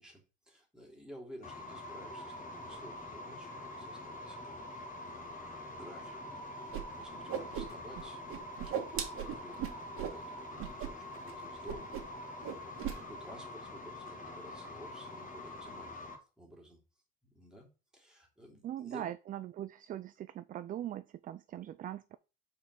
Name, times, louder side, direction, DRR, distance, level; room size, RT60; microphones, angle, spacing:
voice 1, 0.0-16.1 16.4-16.8 17.2-19.1, equal, ahead, 3.0 m, -54 dB
sound 1, 1.4-16.2, left 1 dB, 25° left, 2.2 m, -45 dB
Whoosh swoosh swish, 6.7-6.8 7.1-8.0 8.3-10.2 10.6-10.9 11.1-11.3 11.7-12.2 12.4-13.0, right 8 dB, 50° right, 1.8 m, -37 dB
voice 2, 18.6-22.2, right 11 dB, 30° right, 0.4 m, -41 dB
5.7 x 4.6 x 6.2 m
supercardioid pair, 110°, 29 cm